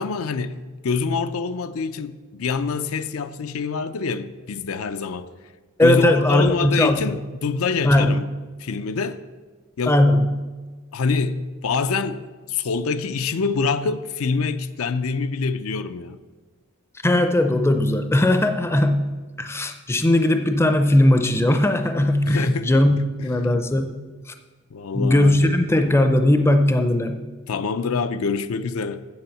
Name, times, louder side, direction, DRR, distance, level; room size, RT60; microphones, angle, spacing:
voice 1, 0.0-5.3 5.8-8.3 8.6-9.2 9.8-10.0 10.9-16.2 22.3-23.3 24.7-25.6 27.5-29.0, left 4 dB, 75° left, 0.5 m, -26 dB
voice 2, 5.8-7.2 7.8-8.2 9.9-10.3 17.0-24.0 24.9-27.2, left 1 dB, 10° left, 0.4 m, -19 dB
7.1 x 7.0 x 7.8 m
head